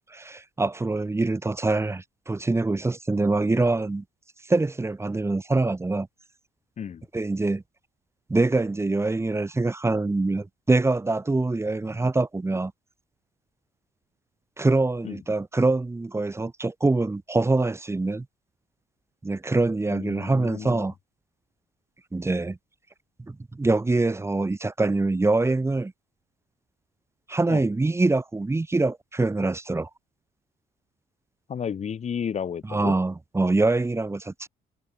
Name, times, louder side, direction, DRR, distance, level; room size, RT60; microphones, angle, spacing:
voice 1, 0.0-4.0 4.5-6.1 7.1-7.6 8.3-12.7 14.6-18.3 19.2-20.9 22.1-22.6 23.3-25.9 27.3-29.9 32.7-34.5, right 2 dB, 15° right, 5.6 m, -24 dB
voice 2, 6.8-7.1 15.0-15.2 19.9-20.9 27.5-27.6 31.5-32.9, left 7 dB, 40° left, 5.9 m, -32 dB
cardioid pair, 110°, 17 cm